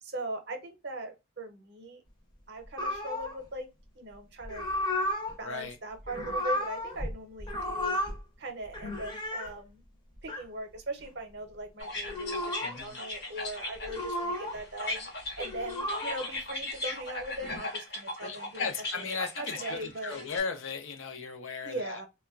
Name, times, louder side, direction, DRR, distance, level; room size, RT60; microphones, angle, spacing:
voice 1, 0.0-2.0 2.5-4.7 5.4-8.0 8.4-9.8 10.2-15.1 15.4-20.2 21.6-22.1, right 1 dB, 55° right, 0.6 m, -40 dB
sound 1, 2.8-3.4 4.4-5.4 6.0-7.1 7.4-8.2 8.7-9.5 10.2-10.4 12.0-12.8 13.8-14.6 15.2-16.3 17.2-17.6, left 1 dB, 20° left, 0.6 m, -33 dB
voice 2, 5.4-5.8 12.6-13.0 18.2-22.0, left 5 dB, 80° left, 0.6 m, -36 dB
sound 2, 11.8-20.4, left 2 dB, 55° left, 0.8 m, -38 dB
3.0 x 2.2 x 2.3 m
head